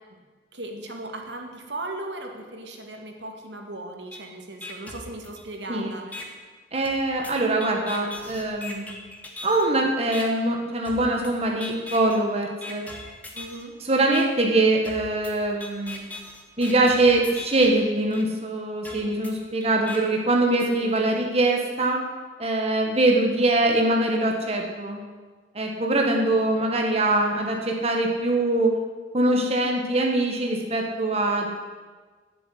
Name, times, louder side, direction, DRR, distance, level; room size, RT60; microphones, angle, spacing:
voice 1, 0.5-6.2 13.3-13.7 20.7-21.0, right 2 dB, 80° right, 2 dB, 2.0 m, -37 dB
sound 1, 4.1-4.2 4.6-5.6 6.1-6.2 6.8-9.7 10.1-10.2 10.8-11.3 11.6-12.2 12.6-13.6 14.1-14.2 14.8-17.7 18.1-18.2 18.8-20.0, left 2 dB, 10° left, 1.6 m, -39 dB
voice 2, 6.7-8.9 9.4-12.8 13.8-16.1 16.6-22.0 22.4-25.0 25.5-28.7 29.1-31.5, right 2 dB, 35° right, 1 dB, 1.4 m, -23 dB
12.0 x 7.1 x 9.3 m, 1.4 s
head